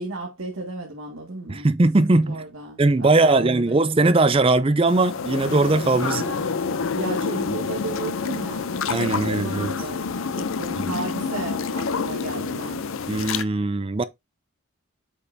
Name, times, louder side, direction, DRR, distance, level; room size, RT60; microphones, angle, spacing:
voice 1, 0.0-1.7 2.1-3.9 6.0-6.4 6.9-10.0 10.4-12.8, right 3 dB, 80° right, 1.9 m, -34 dB
voice 2, 1.5-2.4 2.8-6.3 8.9-9.7 10.8-10.9 13.1-14.0, right 2 dB, 25° right, 0.4 m, -20 dB
sound 1, 4.9-13.4, left 5 dB, 75° left, 0.6 m, -28 dB
8.2 x 5.4 x 2.7 m
head